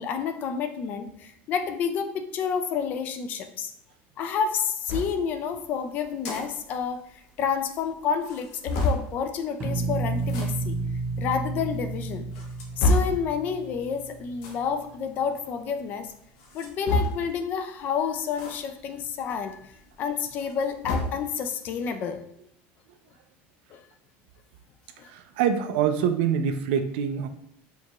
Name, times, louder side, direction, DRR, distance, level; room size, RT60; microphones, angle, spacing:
voice 1, 0.0-3.7 4.2-10.8 11.2-12.3 12.8-16.1 16.5-19.7 20.0-22.2 23.7-23.8 25.0-25.1, left 6 dB, 35° left, 8 dB, 0.3 m, -29 dB
sound 1, 4.9-5.1 6.0-6.4 6.8-6.9 7.1-7.2 7.8-7.9 8.2-9.1 10.2-10.5 11.3-11.4 12.1-13.2 14.4-14.6 16.4-17.4 18.4-18.6 18.9-19.0 20.3-21.2, left 2 dB, 65° left, 0.8 m, -27 dB
sound 2, 9.6-14.5, right 3 dB, 20° right, 0.7 m, -31 dB
voice 2, 25.0-27.3, right 8 dB, 80° right, 8 dB, 0.4 m, -25 dB
4.6 x 2.3 x 2.9 m, 0.72 s
cardioid pair, 175°, 5 cm